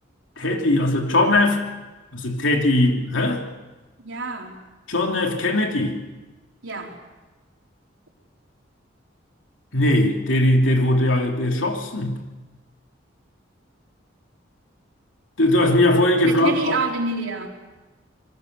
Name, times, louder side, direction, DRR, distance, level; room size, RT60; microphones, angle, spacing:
voice 1, 0.4-1.6 2.1-3.4 4.9-6.0 9.7-12.2 15.4-16.8, left 1 dB, 85° left, 2 dB, 3.1 m, -20 dB
voice 2, 4.0-4.6 6.6-7.0 16.2-17.5, right 3 dB, 90° right, 0 dB, 4.1 m, -27 dB
26.5 x 22.5 x 6.8 m, 1.2 s
head